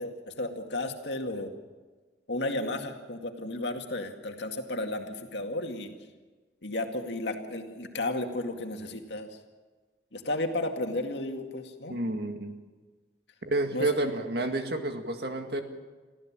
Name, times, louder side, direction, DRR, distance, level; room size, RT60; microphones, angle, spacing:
voice 1, 0.0-1.5 2.3-5.9 6.6-9.3 10.1-12.0 13.7-13.9, left 2 dB, 80° left, 4 dB, 2.2 m, -33 dB
voice 2, 11.9-12.5 13.4-15.6, right 2 dB, 65° right, 5 dB, 2.1 m, -30 dB
24.0 x 15.0 x 7.4 m, 1.3 s
head